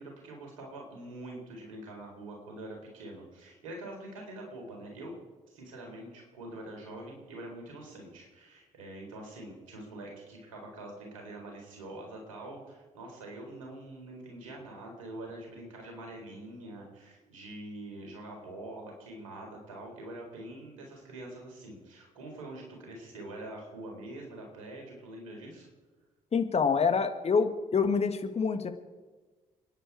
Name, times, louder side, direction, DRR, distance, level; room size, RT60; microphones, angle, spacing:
voice 1, 0.0-5.1 5.5-25.7, right 1 dB, 80° right, 1 dB, 4.0 m, -45 dB
voice 2, 26.3-28.7, left 5 dB, 40° left, 8 dB, 1.6 m, -26 dB
29.5 x 10.0 x 4.9 m, 1.3 s
figure-of-eight pair, 45°, 17 cm